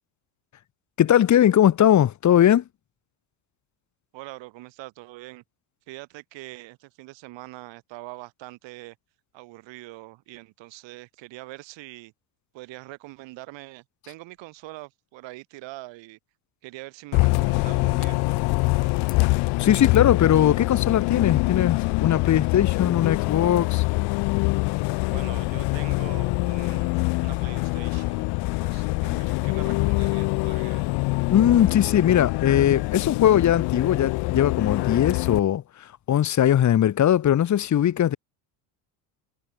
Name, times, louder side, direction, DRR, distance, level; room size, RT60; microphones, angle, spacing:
voice 1, 1.0-2.6 19.6-23.8 31.3-38.2, left 10 dB, 35° left, 1.8 m, -20 dB
voice 2, 4.1-5.4 5.9-9.0 9.3-12.1 12.5-16.2 16.6-18.9 24.9-30.9, right 20 dB, 65° right, 5.2 m, -43 dB
Bus, 17.1-35.4, left 25 dB, 55° left, 0.6 m, -24 dB
supercardioid pair, 110°, 47 cm